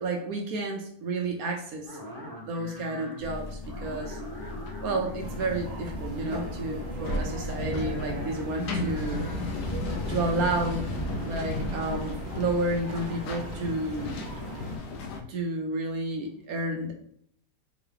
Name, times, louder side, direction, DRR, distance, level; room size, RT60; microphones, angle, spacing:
voice 1, 0.0-4.2 4.8-9.3 10.1-10.9 11.2-14.1 15.3-16.9, right 2 dB, 70° right, 2 dB, 1.0 m, -31 dB
sound 1, 1.9-3.3 3.6-5.3 7.1-9.4, equal, 20° right, 0.6 m, -42 dB
sound 2, 3.2-15.2, left 2 dB, 80° left, 1.2 m, -35 dB
sound 3, 5.2-14.8, right 1 dB, 40° right, 1.2 m, -38 dB
3.8 x 2.9 x 3.2 m, 0.66 s
omnidirectional pair, 1.8 m